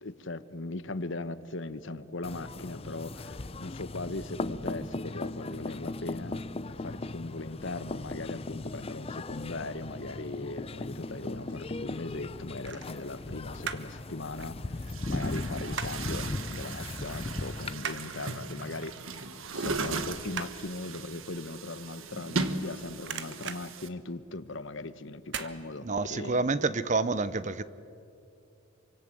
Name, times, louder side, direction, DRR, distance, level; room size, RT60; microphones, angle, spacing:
voice 1, 0.0-6.4 6.7-18.9 19.5-26.4, left 2 dB, 60° left, 1.0 m, -39 dB
sound 1, 2.2-17.7, left 2 dB, 25° left, 0.5 m, -38 dB
sound 2, 11.2-11.8 12.6-14.0 14.3-16.2 16.5-16.7 17.0-22.7 23.0-24.6 25.2-25.6 26.0-26.1, right 7 dB, 55° right, 1.2 m, -41 dB
Chatter / Gurgling / Tap, 14.0-14.1 14.8-23.9, right 3 dB, 70° right, 1.5 m, -37 dB
voice 2, 25.8-27.6, right 3 dB, 35° right, 0.7 m, -28 dB
27.5 x 25.0 x 7.7 m
head